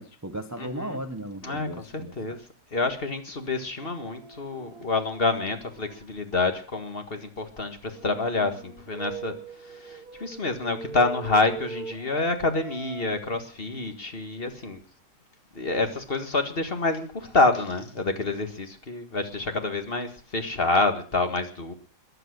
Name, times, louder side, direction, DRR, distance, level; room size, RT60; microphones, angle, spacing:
voice 1, 0.0-2.4, right 1 dB, 15° right, 0.6 m, -36 dB
voice 2, 0.6-1.0 1.4-1.7 1.9-2.4 2.7-9.4 9.7-14.8 15.6-21.7, left 3 dB, 35° left, 1.9 m, -27 dB
sound 1, 3.8-6.1 7.9-13.1, right 5 dB, 65° right, 2.5 m, -42 dB
21.0 x 7.9 x 6.4 m
omnidirectional pair, 1.8 m